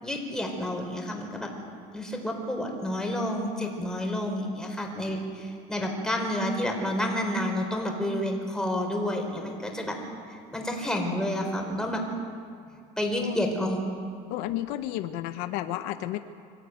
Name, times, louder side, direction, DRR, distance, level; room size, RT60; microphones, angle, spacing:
voice 1, 0.0-1.5 1.9-10.0 10.3-12.0 13.0-13.8, left 1 dB, 5° left, 1 dB, 4.4 m, -30 dB
voice 2, 14.3-16.2, left 14 dB, 75° left, 10 dB, 1.0 m, -32 dB
24.5 x 14.5 x 9.4 m, 2.4 s
cardioid pair, 130°, 16 cm